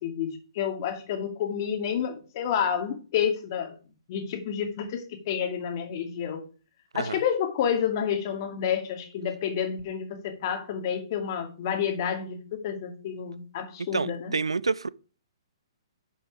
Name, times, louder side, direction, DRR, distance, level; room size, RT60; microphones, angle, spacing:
voice 1, 0.0-3.7 4.1-6.4 6.9-14.3, left 8 dB, 45° left, 2.4 m, -29 dB
voice 2, 13.9-14.9, right 4 dB, 80° right, 0.5 m, -28 dB
11.5 x 6.0 x 4.8 m
figure-of-eight pair, 125°, 3 cm